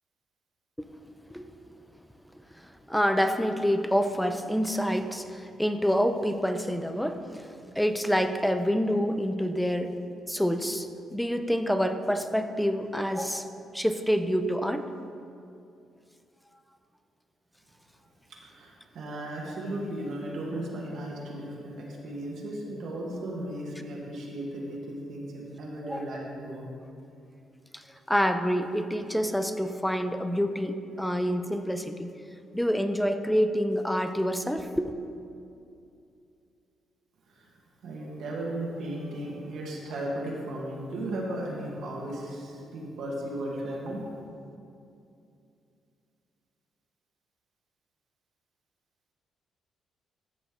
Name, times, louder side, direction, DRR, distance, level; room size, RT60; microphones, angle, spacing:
voice 1, 2.6-9.9 10.3-14.9 19.5-19.6 25.8-26.2 27.7-32.1 32.5-34.9, equal, 5° left, 8 dB, 0.5 m, -27 dB
voice 2, 18.4-26.7 37.4-37.5 37.8-44.0, right 1 dB, 70° right, -3 dB, 1.5 m, -35 dB
14.0 x 5.1 x 3.7 m, 2.6 s
cardioid pair, 90°, 0 cm